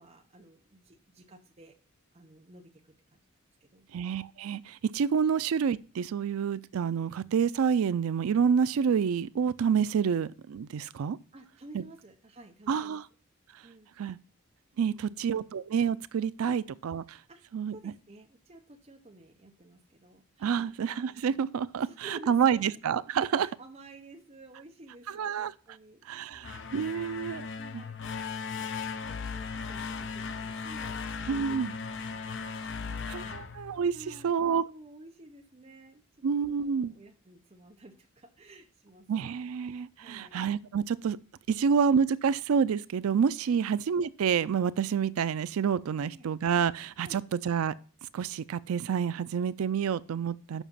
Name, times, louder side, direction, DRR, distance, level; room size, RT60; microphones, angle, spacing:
voice 1, 0.0-1.7 2.1-3.2 3.6-3.9 10.1-10.2 11.3-13.0 13.6-13.9 14.9-15.2 16.5-16.6 17.3-17.4 17.7-20.7 21.1-21.5 21.8-22.6 23.2-26.0 26.3-26.8 27.5-28.0 28.4-28.7 29.1-31.6 32.0-36.0 36.4-39.4 40.0-40.4 41.5-41.7 43.5-43.6 45.9-46.3 47.0-47.2, right 2 dB, 30° right, 0.8 m, -53 dB
voice 2, 3.9-11.2 11.7-11.8 12.7-13.0 14.0-14.2 14.8-17.2 17.5-17.7 20.4-23.5 25.1-25.5 26.1-27.5 27.7-27.8 31.3-31.7 33.1-33.9 34.2-34.6 36.2-36.9 39.1-41.2 41.5-47.7 48.1-50.6, right 7 dB, 90° right, 0.4 m, -28 dB
sound 1, 26.3-34.3, left 5 dB, 60° left, 0.6 m, -37 dB
7.2 x 5.8 x 5.5 m
head